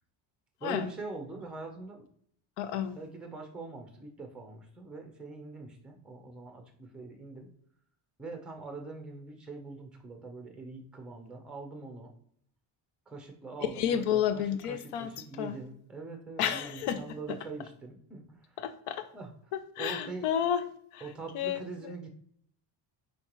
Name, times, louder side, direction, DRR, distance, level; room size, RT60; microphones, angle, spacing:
voice 1, 0.6-2.1 2.9-7.5 8.2-12.1 13.1-18.4 19.1-19.3 19.8-20.3 21.0-22.1, right 3 dB, ahead, 3 dB, 0.6 m, -43 dB
voice 2, 2.6-3.0 13.8-15.1 15.4-15.6 16.4-17.0 18.6-19.1 19.5-20.6 20.9-21.0 21.3-21.9, left 9 dB, 85° left, 11 dB, 0.6 m, -31 dB
5.5 x 2.9 x 3.0 m, 0.65 s
cardioid pair, 150°, 50 cm